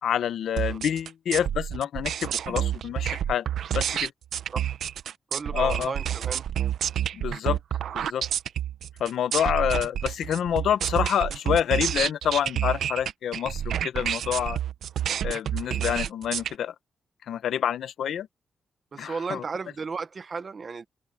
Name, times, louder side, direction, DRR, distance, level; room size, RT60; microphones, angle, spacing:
voice 1, 0.0-3.5 3.7-4.1 5.5-5.9 7.1-7.6 7.9-8.2 9.0-14.6 15.2-16.7 17.3-18.3 19.0-19.4, left 9 dB, 85° left, 1.1 m, -27 dB
sound 1, 0.6-16.5, right 10 dB, 80° right, 0.8 m, -29 dB
voice 2, 5.3-6.4 18.9-20.9, right 5 dB, 40° right, 1.4 m, -34 dB
open air
cardioid pair, 110°, 0 cm